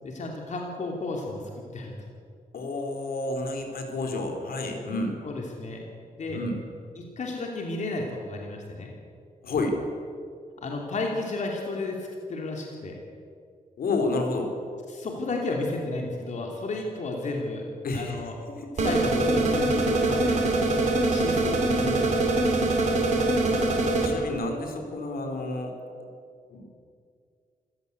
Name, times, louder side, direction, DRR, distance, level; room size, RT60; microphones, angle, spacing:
voice 1, 0.0-1.9 5.2-5.8 6.2-6.4 6.9-8.9 10.6-12.9 14.9-17.7 17.9-18.3 18.7-20.4 21.1-22.7, left 2 dB, 55° left, 0 dB, 3.1 m, -33 dB
voice 2, 2.5-5.2 6.3-6.6 9.4-9.8 13.8-14.5 17.8-18.2 18.6-18.9 24.0-25.7 26.5-26.6, left 2 dB, 80° left, 4 dB, 4.1 m, -30 dB
sound 1, 18.8-24.1, right 2 dB, 50° right, 4.0 m, -23 dB
26.5 x 16.0 x 8.4 m, 2.3 s
wide cardioid pair, 165°, 15 cm